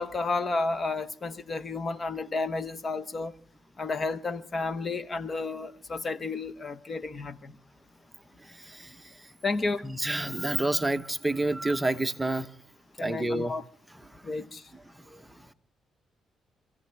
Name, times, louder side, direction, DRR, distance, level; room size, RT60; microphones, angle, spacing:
voice 1, 0.0-3.3 3.8-7.6 9.4-9.9 13.0-13.6 14.2-14.7, left 3 dB, 35° left, 1.0 m, -32 dB
voice 2, 8.6-9.0 9.8-12.5 13.0-13.5 15.1-15.2, right 2 dB, 10° right, 1.0 m, -28 dB
27.0 x 15.5 x 3.4 m
cardioid pair, 90°, 0 cm